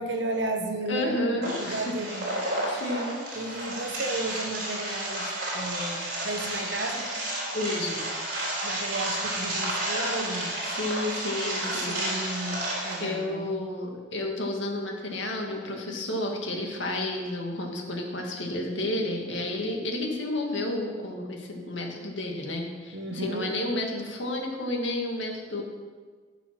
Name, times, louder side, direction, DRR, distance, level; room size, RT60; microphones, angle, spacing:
voice 1, 0.0-2.6 3.3-7.1 8.6-10.5 11.5-13.5 22.9-23.5, right 2 dB, 75° right, 4 dB, 1.3 m, -34 dB
voice 2, 0.9-1.9 2.7-3.2 7.5-8.0 10.7-12.0 13.0-25.6, left 1 dB, 85° left, 1 dB, 2.0 m, -31 dB
sound 1, 1.4-13.0, right 1 dB, 55° right, 3.9 m, -31 dB
14.0 x 6.2 x 6.0 m, 1.5 s
head